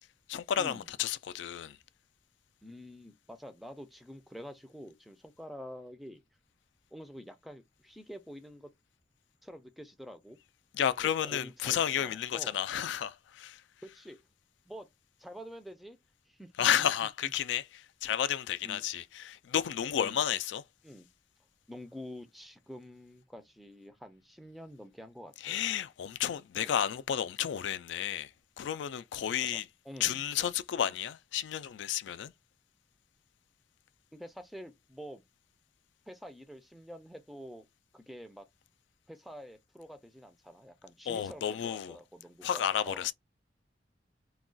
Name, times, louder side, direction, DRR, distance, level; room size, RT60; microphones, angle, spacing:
voice 1, 0.3-1.8 10.7-13.6 16.6-20.6 25.4-29.7 30.0-32.3 41.1-42.0 42.4-43.1, left 9 dB, 80° left, 0.3 m, -32 dB
voice 2, 2.6-6.2 6.9-8.7 9.4-10.4 11.2-12.6 13.8-14.2 14.7-14.9 15.2-16.0 16.3-16.5 18.0-18.1 18.6-18.9 20.0-20.2 20.8-21.1 21.7-25.6 26.6-26.7 29.4-29.6 29.9-30.2 34.1-35.2 36.1-37.7 37.9-38.5 39.1-43.1, equal, ahead, 0.4 m, -47 dB
2.3 x 2.2 x 3.7 m
head